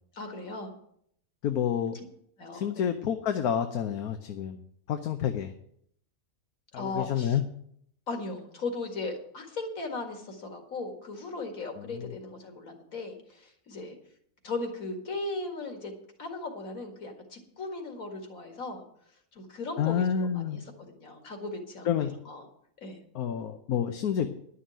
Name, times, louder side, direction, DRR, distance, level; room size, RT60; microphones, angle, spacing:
voice 1, 0.1-0.7 1.9-2.0 2.4-2.9 6.8-7.4 8.1-13.9 14.4-15.9 16.2-18.8 19.3-22.5 22.8-23.0, left 3 dB, 70° left, 4 dB, 2.4 m, -37 dB
voice 2, 1.4-2.0 2.5-4.6 4.9-5.5 6.7-7.4 11.8-12.1 19.8-20.6 21.9-22.1 23.1-24.3, left 8 dB, 85° left, 7 dB, 1.3 m, -29 dB
11.0 x 6.5 x 8.9 m, 0.68 s
omnidirectional pair, 1.5 m